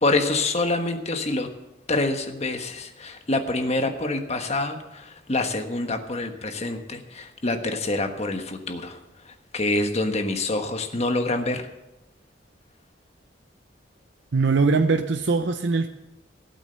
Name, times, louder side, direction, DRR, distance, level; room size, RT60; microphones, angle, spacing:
voice 1, 0.0-1.5 1.9-9.0 9.5-11.7, left 2 dB, 35° left, 6 dB, 1.3 m, -26 dB
voice 2, 14.3-15.9, right 4 dB, 80° right, 7 dB, 0.7 m, -21 dB
15.5 x 8.4 x 6.8 m, 0.97 s
head